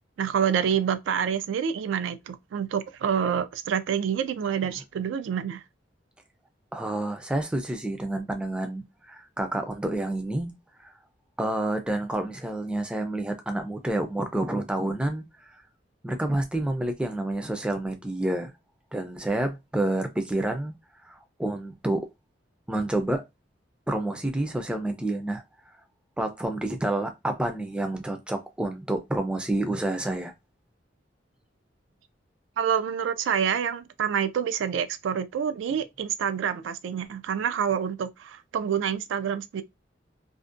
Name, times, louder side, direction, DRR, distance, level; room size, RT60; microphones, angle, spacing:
voice 1, 0.2-5.6 32.6-39.6, right 8 dB, 90° right, 0.3 m, -27 dB
voice 2, 6.7-10.5 10.8-10.9 11.4-15.3 16.0-18.5 18.9-20.7 21.0-22.1 22.7-23.2 23.9-25.4 26.2-30.3, right 1 dB, 5° right, 0.4 m, -29 dB
2.5 x 2.1 x 2.5 m
head